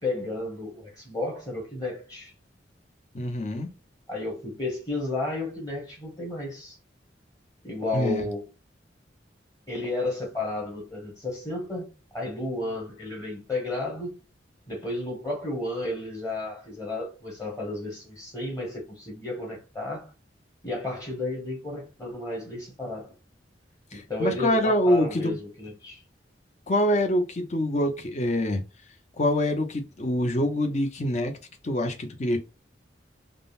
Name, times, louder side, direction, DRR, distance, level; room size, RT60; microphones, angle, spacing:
voice 1, 0.0-2.3 4.1-6.8 7.6-8.5 9.7-14.1 14.7-20.1 20.6-23.1 23.9-26.0, left 2 dB, 20° left, 1.1 m, -32 dB
voice 2, 3.1-3.7 7.9-8.3 23.9-25.4 26.7-28.6 29.2-31.3 31.6-32.4, left 1 dB, 40° left, 0.6 m, -25 dB
3.6 x 2.0 x 2.4 m
head